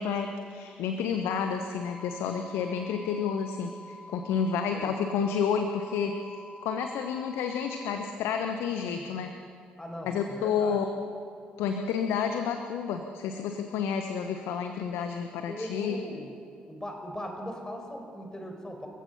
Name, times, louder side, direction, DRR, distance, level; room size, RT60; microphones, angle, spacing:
voice 1, 0.0-9.3 10.0-10.9 11.6-16.0, left 6 dB, 65° left, 6 dB, 1.1 m, -30 dB
sound 1, 1.7-7.9, left 2 dB, 15° right, 7.2 m, -48 dB
voice 2, 9.8-10.8 15.5-16.4 16.6-18.9, equal, 15° left, 3 dB, 5.0 m, -39 dB
29.5 x 15.5 x 5.7 m, 2.5 s
figure-of-eight pair, 45°, 4 cm